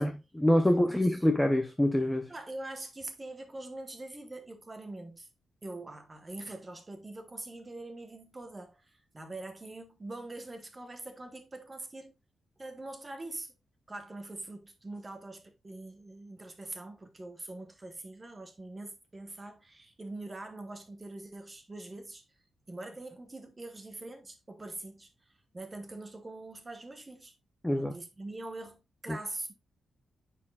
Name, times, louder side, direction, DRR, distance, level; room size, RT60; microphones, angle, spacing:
voice 1, 0.0-2.3 27.6-27.9 29.1-29.2, left 1 dB, 5° left, 0.5 m, -26 dB
voice 2, 0.8-1.2 2.3-5.3 5.6-12.1 12.6-13.5 13.9-22.2 22.7-25.1 25.5-27.3 27.7-29.5, right 2 dB, 20° right, 1.0 m, -43 dB
9.7 x 4.4 x 2.3 m
wide cardioid pair, 165°, 0 cm